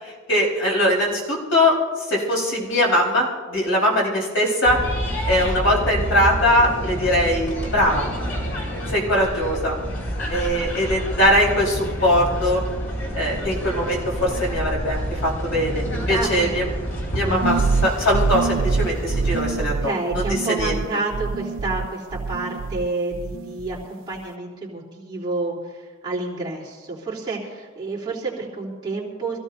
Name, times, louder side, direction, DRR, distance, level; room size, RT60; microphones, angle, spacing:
voice 1, 0.3-4.8 5.3-8.1 8.9-9.8 10.3-12.6 13.1-16.7 17.1-20.7, left 1 dB, 65° left, -3 dB, 4.5 m, -21 dB
sound 1, 4.6-19.5, equal, 80° left, 4.7 m, -28 dB
voice 2, 16.1-16.5 17.2-17.5 19.6-29.4, right 3 dB, 20° right, -6 dB, 3.5 m, -29 dB
sound 2, 17.4-22.9 23.1-23.8, right 4 dB, 65° right, 0.4 m, -25 dB
25.5 x 16.0 x 2.7 m, 1.5 s
head